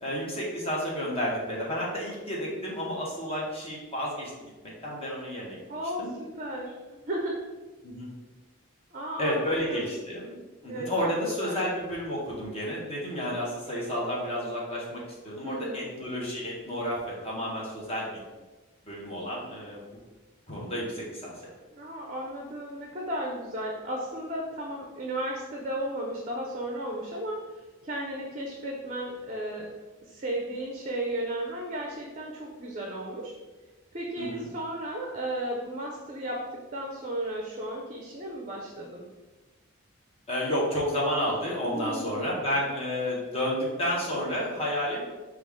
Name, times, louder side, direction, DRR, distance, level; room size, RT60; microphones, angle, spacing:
voice 1, 0.0-4.5 4.8-5.6 6.0-6.1 7.8-8.1 9.2-10.3 10.6-18.1 18.9-19.8 20.5-21.3 34.2-34.4 40.3-45.0, equal, 25° left, -4 dB, 1.0 m, -31 dB
voice 2, 5.7-6.0 6.3-7.4 8.9-9.9 10.7-11.6 15.4-15.9 21.7-27.4 27.8-29.7 30.0-33.3 33.9-36.4 36.7-39.0 41.7-42.3, right 1 dB, 35° right, 0 dB, 0.5 m, -34 dB
4.8 x 2.4 x 3.5 m, 1.2 s
head